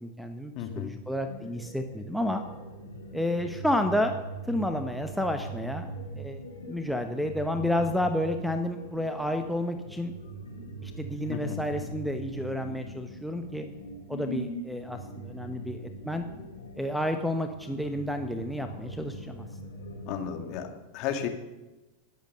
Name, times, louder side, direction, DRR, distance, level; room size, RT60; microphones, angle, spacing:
voice 1, 0.0-2.4 3.1-4.1 4.5-5.9 6.1-6.4 6.7-10.1 10.8-13.7 14.1-16.3 16.8-19.4, left 1 dB, ahead, 5 dB, 0.9 m, -30 dB
voice 2, 0.6-0.9 11.3-11.6 20.1-21.3, left 9 dB, 40° left, 4 dB, 2.1 m, -33 dB
sound 1, 1.2-20.7, right 1 dB, 70° left, 3.5 m, -41 dB
19.0 x 8.3 x 6.7 m, 1.1 s
figure-of-eight pair, 90°, 0 cm